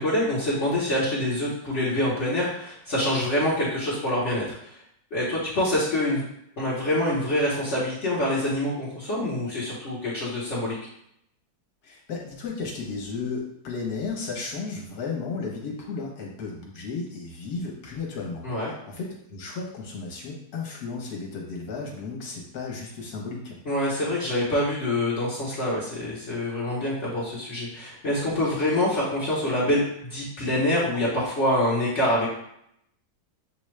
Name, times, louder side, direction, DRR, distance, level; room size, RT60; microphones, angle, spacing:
voice 1, 0.0-4.8 5.1-6.2 6.6-10.7 18.4-18.7 23.6-32.3, left 1 dB, 45° left, -8 dB, 1.2 m, -26 dB
voice 2, 11.8-23.6, left 4 dB, 65° left, -1 dB, 1.5 m, -34 dB
6.9 x 2.3 x 3.2 m, 0.75 s
omnidirectional pair, 1.9 m